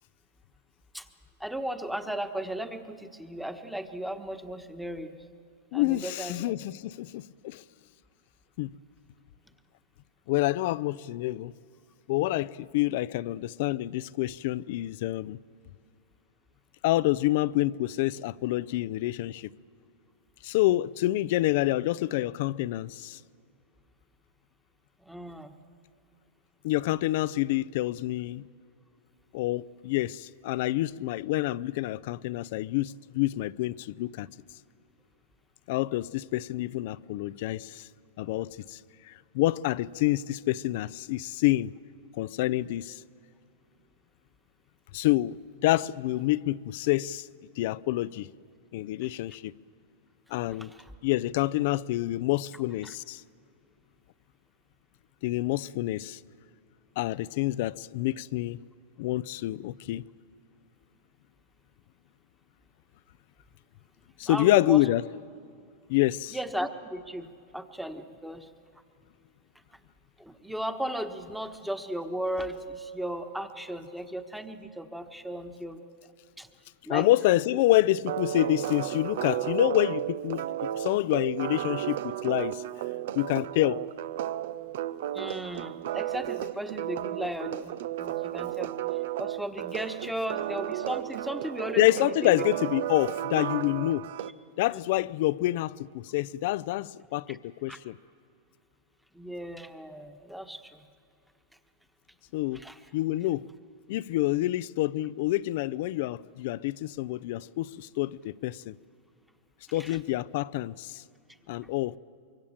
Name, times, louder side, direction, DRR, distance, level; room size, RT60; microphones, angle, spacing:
voice 1, 1.4-5.2 5.7-6.4 25.0-25.6 50.6-50.9 52.8-52.9 64.2-64.8 66.3-68.5 70.2-75.8 76.4-76.5 76.8-77.1 85.1-88.7 89.2-92.5 94.7-94.8 97.3-97.4 97.7-97.8 99.1-100.9 102.5-102.8 109.8-110.0, right 1 dB, ahead, 1.3 m, -36 dB
voice 2, 5.7-7.6 8.6-8.7 10.3-11.5 12.1-15.4 16.8-19.5 20.4-23.2 26.6-28.4 29.3-34.3 35.7-37.9 38.2-38.8 39.1-41.7 42.2-43.0 44.9-47.3 47.6-48.3 48.7-49.5 50.3-50.7 51.0-53.2 55.2-56.2 57.0-58.6 59.0-60.0 64.2-65.0 65.9-66.4 76.9-82.6 83.1-83.8 91.8-94.1 94.6-98.0 102.3-102.6 102.9-103.5 103.9-108.7 109.7-111.0 111.5-112.0, left 16 dB, 60° left, 0.5 m, -27 dB
sound 1, 78.0-94.3, right 12 dB, 70° right, 0.7 m, -33 dB
25.0 x 23.5 x 7.4 m
hypercardioid pair, 135°, 0 cm